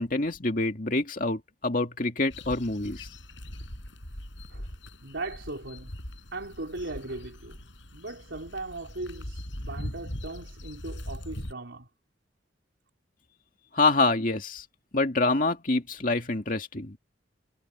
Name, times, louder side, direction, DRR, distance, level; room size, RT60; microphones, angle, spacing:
voice 1, 0.0-3.1 13.7-14.6 14.9-17.0, left 2 dB, 45° left, 2.3 m, -26 dB
sound 1, 2.3-11.5, left 1 dB, 75° left, 7.8 m, -41 dB
voice 2, 5.0-5.9 6.3-7.6 7.9-11.9, right 2 dB, 75° right, 3.9 m, -38 dB
head